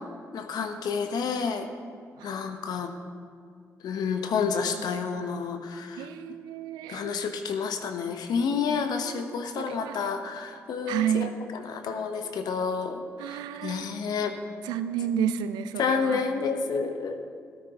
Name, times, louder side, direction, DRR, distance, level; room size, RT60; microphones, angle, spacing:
voice 1, 0.3-1.7 2.2-2.9 3.8-6.1 6.9-14.4 15.8-17.1, left 5 dB, 75° left, 6 dB, 0.9 m, -30 dB
voice 2, 6.0-7.1 9.0-10.0 10.9-11.4 13.2-13.9 14.6-16.2, right 9 dB, 85° right, 12 dB, 0.4 m, -31 dB
13.5 x 12.5 x 2.9 m, 2.2 s
hypercardioid pair, 40°, 7 cm